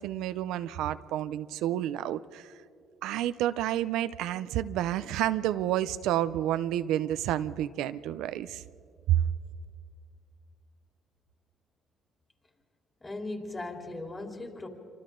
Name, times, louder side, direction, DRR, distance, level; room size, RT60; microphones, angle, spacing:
voice 1, 0.0-2.5 3.0-8.6 9.1-9.2, right 12 dB, 85° right, 13 dB, 0.5 m, -29 dB
voice 2, 13.0-14.7, left 2 dB, 25° left, 2 dB, 3.7 m, -38 dB
27.5 x 25.0 x 3.8 m, 2.4 s
cardioid pair, 80°, 0 cm